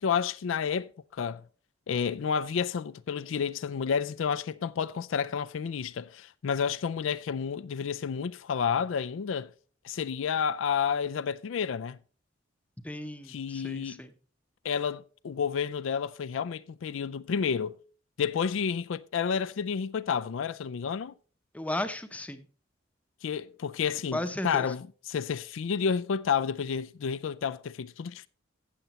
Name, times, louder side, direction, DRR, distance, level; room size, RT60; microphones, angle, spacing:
voice 1, 0.0-1.4 1.9-9.5 9.8-12.0 13.3-14.0 14.6-17.8 18.2-21.1 23.2-28.3, left 6 dB, 80° left, 0.4 m, -30 dB
voice 2, 12.8-14.1 21.5-22.4 24.1-24.7, left 1 dB, 5° left, 0.7 m, -35 dB
16.0 x 6.9 x 3.0 m
head